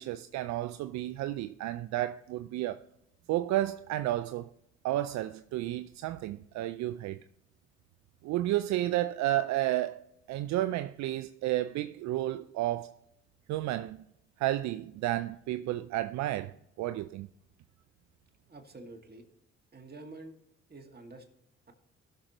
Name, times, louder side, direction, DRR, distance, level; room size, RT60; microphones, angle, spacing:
voice 1, 0.0-2.8 3.3-4.5 4.8-7.2 8.2-13.0 13.5-14.0 14.4-17.3, right 14 dB, 70° right, 0.4 m, -32 dB
voice 2, 18.5-19.2 19.7-20.4 20.7-21.2 21.7-21.8, right 2 dB, 35° right, 2.1 m, -48 dB
16.0 x 6.5 x 3.0 m
supercardioid pair, 55°, 29 cm